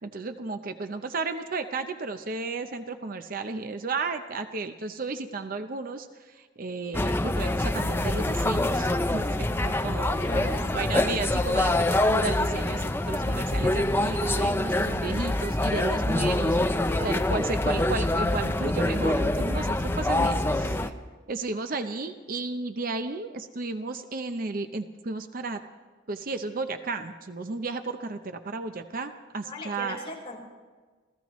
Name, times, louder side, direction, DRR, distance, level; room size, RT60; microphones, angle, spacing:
voice 1, 0.0-20.4 21.3-25.6 26.1-30.0, right 3 dB, 45° right, 8 dB, 0.7 m, -33 dB
sound 1, 6.9-20.9, left 1 dB, 10° left, 0.5 m, -25 dB
voice 2, 10.2-11.1 20.2-20.3 20.6-20.8 29.4-30.4, left 2 dB, 30° left, -3 dB, 4.4 m, -39 dB
30.0 x 15.0 x 3.1 m, 1.4 s
head